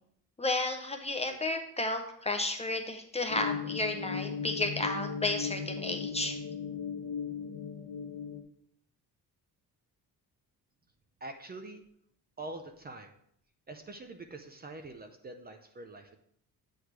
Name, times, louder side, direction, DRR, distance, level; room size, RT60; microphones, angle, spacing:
voice 1, 0.4-6.4, left 2 dB, 15° left, 5 dB, 0.6 m, -32 dB
sound 1, 3.3-8.4, left 6 dB, 65° left, 0.9 m, -37 dB
voice 2, 11.2-11.8 12.4-13.1 13.7-16.2, right 2 dB, 25° right, 5 dB, 0.6 m, -44 dB
8.2 x 3.2 x 5.9 m, 0.70 s
cardioid pair, 150°, 38 cm